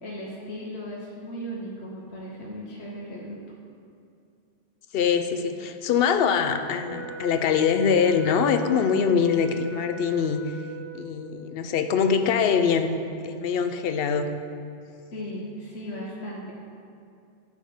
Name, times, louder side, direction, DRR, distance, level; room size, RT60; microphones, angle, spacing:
voice 1, 0.0-3.4 15.1-16.5, equal, 90° left, -4 dB, 1.2 m, -36 dB
voice 2, 4.9-10.6 10.9-13.0 13.2-14.3, left 6 dB, 70° left, 8 dB, 0.8 m, -23 dB
Wind instrument woodwind instrument, 6.8-11.2, left 2 dB, 30° right, 1.2 m, -39 dB
10.0 x 3.6 x 6.7 m, 2.6 s
omnidirectional pair, 1.1 m